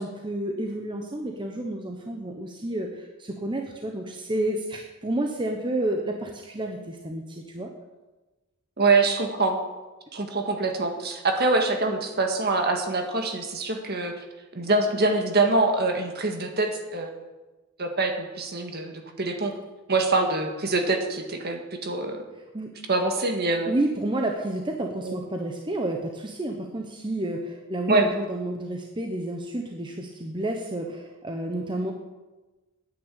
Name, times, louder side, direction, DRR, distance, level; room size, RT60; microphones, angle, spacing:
voice 1, 0.0-7.7 22.5-22.7 23.7-31.9, right 1 dB, 20° right, 2 dB, 1.0 m, -30 dB
voice 2, 8.8-9.6 10.1-14.1 14.5-17.1 17.8-19.5 19.9-22.3 22.9-23.7 25.0-25.2 27.9-28.1, right 3 dB, 45° right, 4 dB, 1.8 m, -24 dB
10.0 x 9.0 x 8.3 m, 1.2 s
head